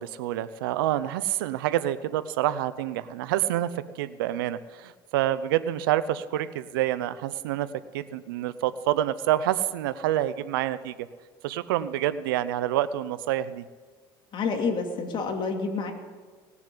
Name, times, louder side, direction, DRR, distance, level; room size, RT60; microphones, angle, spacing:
voice 1, 0.0-3.7 3.9-7.7 7.9-11.1 11.4-13.6, right 12 dB, 90° right, 15 dB, 0.7 m, -27 dB
voice 2, 14.3-15.9, left 4 dB, 45° left, 3 dB, 2.5 m, -28 dB
18.5 x 7.1 x 8.3 m, 1.5 s
supercardioid pair, 95°, 11 cm